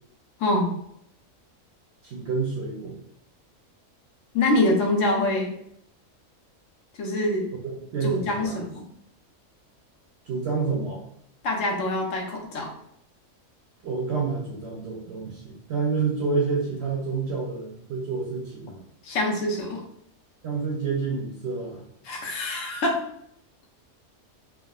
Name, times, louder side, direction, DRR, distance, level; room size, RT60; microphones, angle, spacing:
voice 1, 0.4-0.7 4.3-5.5 7.0-7.5 8.0-8.8 11.4-12.7 19.0-19.8 22.1-23.1, left 1 dB, 70° left, 1 dB, 1.0 m, -25 dB
voice 2, 2.0-3.0 7.6-8.6 10.3-11.0 13.8-18.8 20.4-21.8, right 4 dB, 65° right, -1 dB, 0.7 m, -28 dB
3.5 x 2.1 x 2.3 m, 0.72 s
omnidirectional pair, 1.4 m